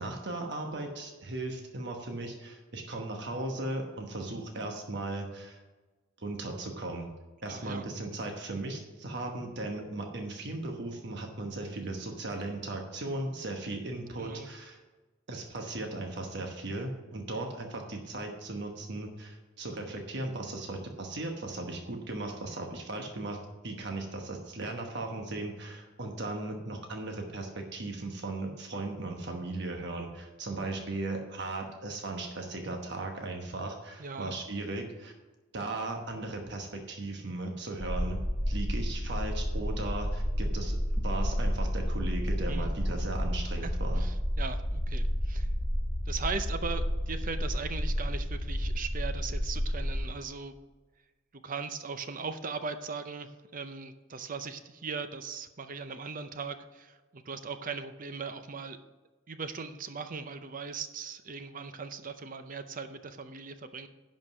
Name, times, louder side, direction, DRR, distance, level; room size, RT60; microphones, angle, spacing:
voice 1, 0.0-5.6 6.2-7.1 7.4-14.8 15.3-35.1 35.5-38.2 38.4-44.0, right 2 dB, 60° right, 2 dB, 1.2 m, -37 dB
voice 2, 7.5-7.8 14.2-14.5 29.2-29.5 34.0-34.4 37.8-37.9 42.5-42.7 43.6-45.5 46.1-50.6 51.3-58.8 59.3-63.9, right 5 dB, 45° right, 10 dB, 0.6 m, -39 dB
sound 1, 37.8-50.0, equal, 5° left, 2.7 m, -31 dB
11.0 x 5.2 x 6.1 m, 1.2 s
head